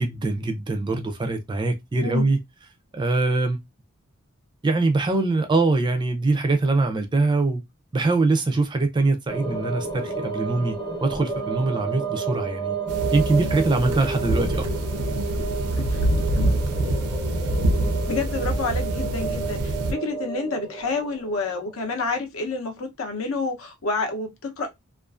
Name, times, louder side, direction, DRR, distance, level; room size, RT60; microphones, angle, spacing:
voice 1, 0.0-2.4 2.9-3.6 4.6-7.6 7.9-12.8 13.1-14.7, right 3 dB, 20° right, 0.4 m, -23 dB
sound 1, 9.3-21.7, right 4 dB, 20° left, 0.7 m, -31 dB
sound 2, 12.9-19.9, right 1 dB, 90° right, 0.5 m, -25 dB
voice 2, 18.1-24.7, left 3 dB, 65° left, 0.7 m, -29 dB
2.4 x 2.4 x 2.3 m
head